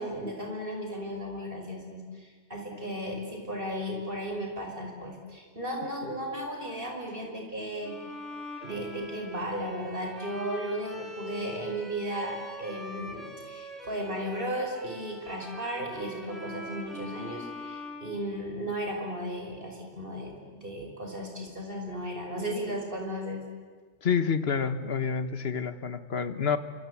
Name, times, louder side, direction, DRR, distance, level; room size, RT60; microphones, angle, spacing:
voice 1, 0.0-8.0 8.6-23.4, equal, 50° right, 2 dB, 5.8 m, -35 dB
Bowed string instrument, 7.8-18.8, equal, ahead, 5.4 m, -43 dB
voice 2, 24.0-26.6, left 6 dB, 65° left, 11 dB, 1.6 m, -28 dB
27.5 x 25.5 x 8.5 m, 1.5 s
omnidirectional pair, 1.1 m